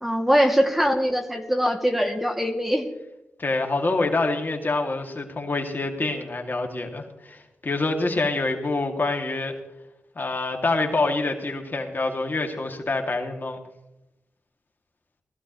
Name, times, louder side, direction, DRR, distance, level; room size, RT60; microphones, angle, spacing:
voice 1, 0.0-2.9, equal, 5° right, 3 dB, 2.3 m, -22 dB
voice 2, 3.4-9.6 10.2-13.6, left 3 dB, 45° left, 3 dB, 2.3 m, -26 dB
19.0 x 15.0 x 3.1 m, 0.90 s
cardioid pair, 45°, 5 cm